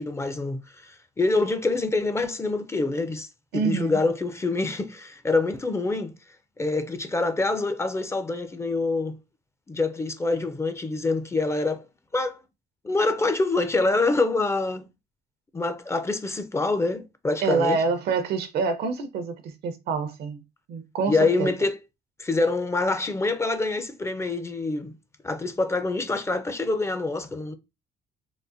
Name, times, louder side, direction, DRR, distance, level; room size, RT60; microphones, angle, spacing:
voice 1, 0.0-3.3 3.5-6.1 6.6-9.2 9.7-11.8 12.1-12.4 12.8-14.9 15.5-17.8 21.1-21.8 22.2-24.9 25.2-27.5, left 3 dB, 15° left, 0.4 m, -26 dB
voice 2, 3.5-4.0 17.4-20.4 20.7-21.5, right 4 dB, 70° right, 0.7 m, -26 dB
3.8 x 2.1 x 2.5 m
cardioid pair, 110°, 17 cm